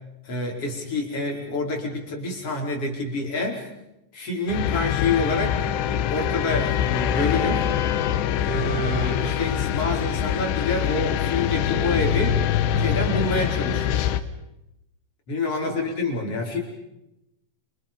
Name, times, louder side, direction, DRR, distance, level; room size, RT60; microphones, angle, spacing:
voice 1, 0.2-3.7 4.1-5.6 5.8-7.7 8.4-12.4 12.8-14.1 15.3-16.6, left 2 dB, 35° left, 0 dB, 5.6 m, -27 dB
sound 1, 4.5-14.2, left 10 dB, 80° left, 3.2 m, -24 dB
Laughter / Crowd, 8.2-10.8 11.5-11.6, right 7 dB, 75° right, 4.0 m, -42 dB
voice 2, 15.6-15.9 16.3-16.6, right 1 dB, 50° right, 2 dB, 6.5 m, -42 dB
29.0 x 28.5 x 5.3 m, 0.89 s
omnidirectional pair, 5.0 m